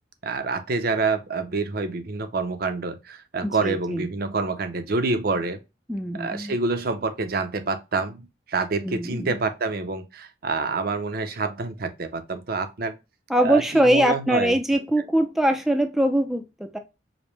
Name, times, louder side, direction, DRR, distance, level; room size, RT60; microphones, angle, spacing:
voice 1, 0.2-5.6 6.2-12.9 13.4-14.6, right 3 dB, 55° right, 0.6 m, -27 dB
voice 2, 3.4-4.1 5.9-6.6 8.8-9.4 13.3-16.8, right 1 dB, ahead, 0.4 m, -22 dB
5.0 x 2.1 x 3.0 m
head